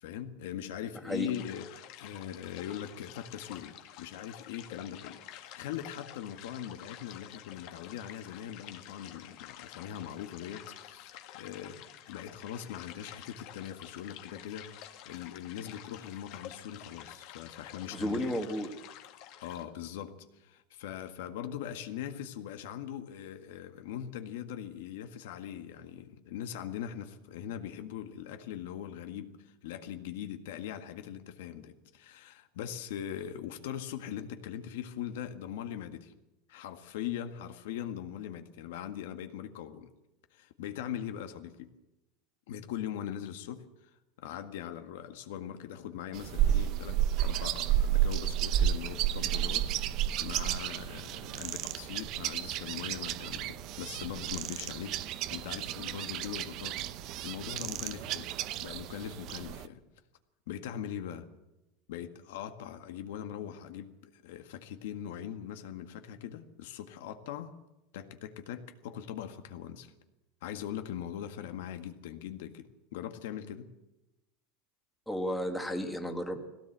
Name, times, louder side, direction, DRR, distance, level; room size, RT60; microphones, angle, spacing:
voice 1, 0.0-18.3 19.4-36.1 36.5-39.9 40.3-41.7 42.5-43.9 44.2-58.3 58.6-59.8 60.5-61.3 61.9-67.6 67.9-69.9 70.4-73.7, left 10 dB, 70° left, 8 dB, 1.7 m, -41 dB
sound 1, 1.3-19.6, left 12 dB, 45° left, 1.9 m, -50 dB
voice 2, 17.9-18.7 75.1-76.4, equal, ahead, 3 dB, 1.7 m, -33 dB
sound 2, 46.1-59.7, right 11 dB, 40° right, 0.8 m, -32 dB
19.0 x 17.0 x 8.1 m, 0.96 s
supercardioid pair, 170°, 0 cm